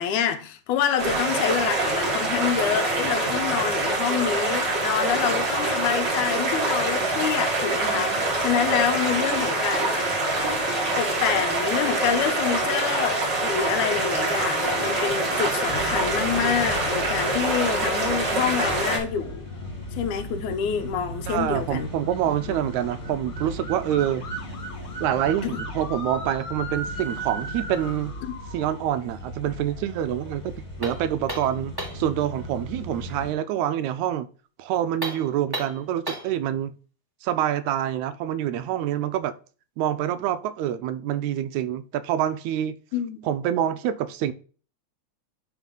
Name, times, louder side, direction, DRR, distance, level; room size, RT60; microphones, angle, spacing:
voice 1, 0.0-10.2 11.0-19.5 19.9-21.9 22.5-22.6 25.4-25.6 42.9-43.2, left 8 dB, 90° left, 2.3 m, -27 dB
sound 1, 1.0-19.0, right 2 dB, 40° right, 2.6 m, -25 dB
sound 2, 15.7-33.3, equal, 20° left, 1.7 m, -36 dB
voice 2, 21.3-24.2 25.0-28.1 28.5-30.5 30.8-34.3 34.6-36.8 37.2-39.3 39.8-42.8 43.2-44.3, right 11 dB, 80° right, 1.9 m, -26 dB
sound 3, 30.8-32.1 34.9-36.4, right 1 dB, 10° right, 1.4 m, -34 dB
10.5 x 3.6 x 3.8 m
omnidirectional pair, 3.5 m